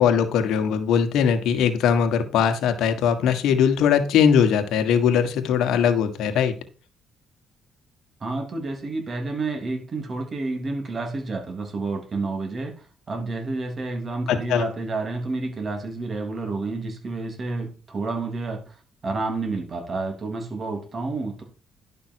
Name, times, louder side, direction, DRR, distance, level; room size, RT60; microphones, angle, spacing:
voice 1, 0.0-6.5 14.3-14.7, left 7 dB, 85° left, 1.6 m, -20 dB
voice 2, 8.2-12.7 13.1-18.7 19.0-21.4, right 3 dB, 40° right, 3.1 m, -29 dB
11.0 x 6.1 x 4.6 m
cardioid pair, 90°, 0 cm